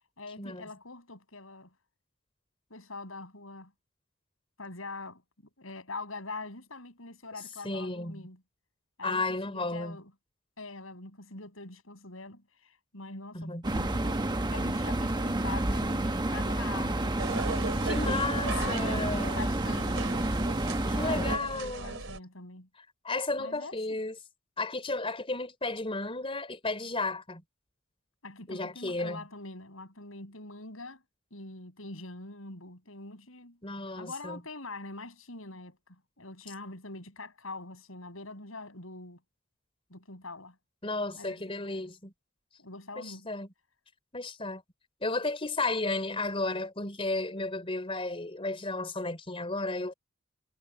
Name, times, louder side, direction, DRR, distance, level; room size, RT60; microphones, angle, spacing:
voice 1, 0.2-1.7 2.7-3.7 4.6-5.2 5.6-8.4 9.0-10.1 10.6-17.2 18.3-20.1 20.8-22.7 23.4-23.8 28.2-31.0 31.3-33.6 33.9-39.2 39.9-40.6 41.1-41.9 42.6-43.3, left 3 dB, 85° left, 7.2 m, -43 dB
voice 2, 7.6-8.3 9.0-10.0 13.3-13.6 17.8-19.4 20.9-22.0 23.0-24.2 24.6-27.4 28.5-29.2 33.6-34.4 40.8-42.1 43.0-43.5 44.1-44.6 45.0-49.9, left 2 dB, 25° left, 4.1 m, -33 dB
sound 1, 13.6-21.4, right 1 dB, 20° right, 1.1 m, -29 dB
sound 2, 17.2-22.2, right 3 dB, 70° right, 4.0 m, -38 dB
head